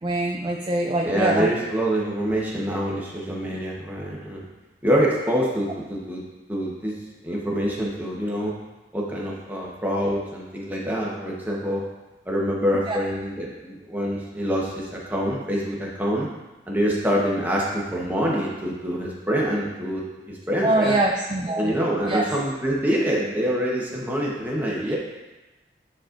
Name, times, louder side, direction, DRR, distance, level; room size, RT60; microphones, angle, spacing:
voice 1, 0.0-1.5 12.9-13.0 20.6-21.7 22.0-22.3 24.8-24.9, right 2 dB, 25° right, 0 dB, 0.4 m, -23 dB
voice 2, 1.0-4.5 4.8-6.2 6.5-6.9 7.2-8.5 8.9-11.8 12.3-16.3 16.7-21.0 21.6-25.0, equal, 10° right, -4 dB, 1.1 m, -25 dB
9.7 x 4.2 x 2.6 m, 1.1 s
head